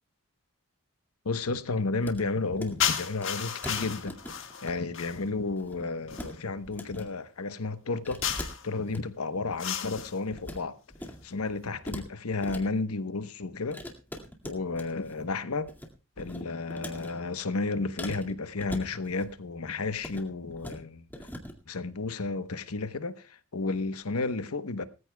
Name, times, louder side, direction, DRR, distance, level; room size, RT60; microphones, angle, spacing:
voice 1, 1.2-4.2 4.6-8.2 8.6-10.8 11.2-13.8 14.4-15.7 16.2-21.0 21.7-24.9, left 3 dB, 85° left, 1.0 m, -32 dB
sound 1, 2.0-2.2 2.5-2.9 3.2-3.3 3.6-4.7 5.0-5.2 5.5-6.3 6.6-7.1 8.0-9.0 9.5-10.6 10.9-11.2 11.5-12.6 13.7-15.2 15.5-15.9 16.2-17.1 18.0-19.3 19.9-20.2 20.5-20.8 21.1-21.5, equal, 10° left, 2.1 m, -41 dB
sound 2, 2.8-5.3 6.1-6.3 8.2-8.7 9.6-10.2, left 9 dB, 60° left, 1.7 m, -32 dB
20.5 x 14.5 x 2.3 m
head